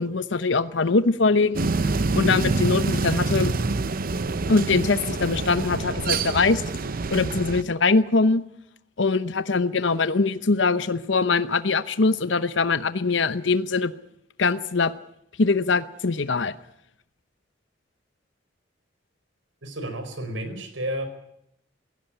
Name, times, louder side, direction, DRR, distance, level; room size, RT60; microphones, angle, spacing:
voice 1, 0.0-3.5 4.5-6.6 7.1-8.4 9.0-13.9 14.4-14.9 15.4-16.5, left 4 dB, 70° left, 13 dB, 0.9 m, -22 dB
sound 1, 1.5-7.6, right 3 dB, 50° right, 0.8 m, -26 dB
voice 2, 19.6-21.1, right 1 dB, 85° right, 9 dB, 4.6 m, -31 dB
17.0 x 16.5 x 10.0 m, 0.76 s
head